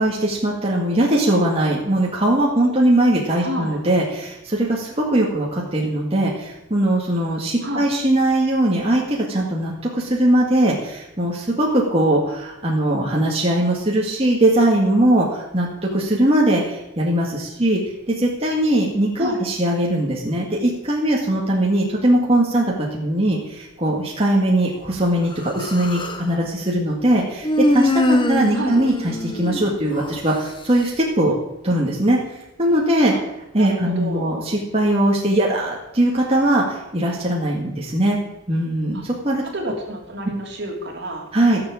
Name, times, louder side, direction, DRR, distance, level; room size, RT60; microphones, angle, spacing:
voice 1, 0.0-17.8 18.1-31.3 31.6-32.2 32.6-33.1 33.5-38.2 38.5-39.4 41.3-41.6, right 1 dB, 30° right, -3 dB, 2.1 m, -20 dB
voice 2, 3.4-3.8 7.6-7.9 19.2-19.4 28.5-28.8 33.1-33.2 33.6-34.4 38.9-39.1 39.5-41.3, equal, 55° right, 1 dB, 3.1 m, -30 dB
Human voice, 25.3-26.3 27.4-30.2, left 1 dB, 25° left, 1.0 m, -22 dB
16.0 x 7.4 x 7.4 m, 0.88 s
head